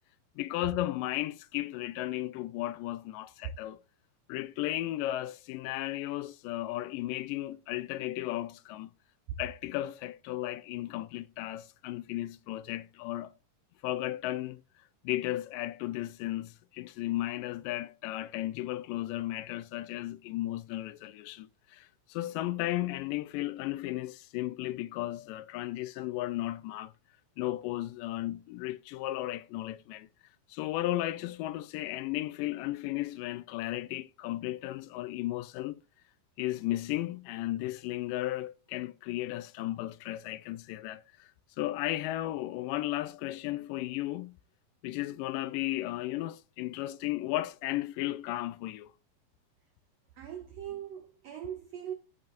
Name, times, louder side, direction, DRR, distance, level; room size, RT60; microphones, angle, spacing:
voice 1, 0.4-3.8 4.3-8.9 9.4-13.3 13.8-14.6 15.0-26.9 27.4-30.1 30.5-35.8 36.4-41.3 41.6-44.4 44.8-48.9, left 15 dB, 85° left, 2.1 m, -35 dB
voice 2, 50.2-51.9, right 10 dB, 80° right, 1.4 m, -40 dB
15.0 x 5.5 x 2.6 m
omnidirectional pair, 3.9 m